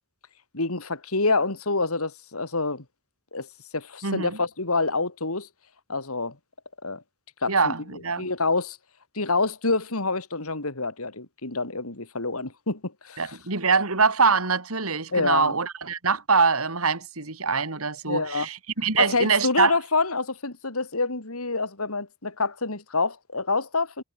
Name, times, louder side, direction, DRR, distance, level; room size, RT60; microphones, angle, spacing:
voice 1, 0.5-2.8 3.3-5.5 5.9-6.4 6.8-7.0 7.4-7.7 8.2-8.8 9.1-13.4 15.1-15.5 18.1-18.5 19.0-24.0, left 3 dB, 80° left, 3.4 m, -27 dB
voice 2, 4.0-4.4 7.5-8.3 13.2-19.8, right 5 dB, 75° right, 3.0 m, -24 dB
head